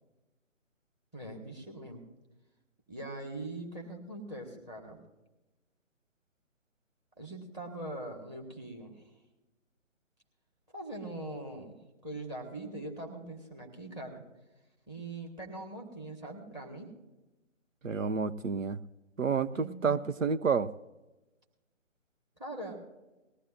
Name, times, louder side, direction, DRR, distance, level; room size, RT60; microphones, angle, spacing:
voice 1, 1.1-2.0 2.9-5.0 7.2-9.0 10.7-11.8 12.0-14.2 14.9-16.9 19.5-20.0 22.4-22.8, right 2 dB, 10° right, 3 dB, 1.6 m, -42 dB
voice 2, 17.8-18.8 19.2-20.7, right 5 dB, 80° right, 12 dB, 0.8 m, -29 dB
20.0 x 15.0 x 2.5 m, 1.1 s
figure-of-eight pair, 150°, 38 cm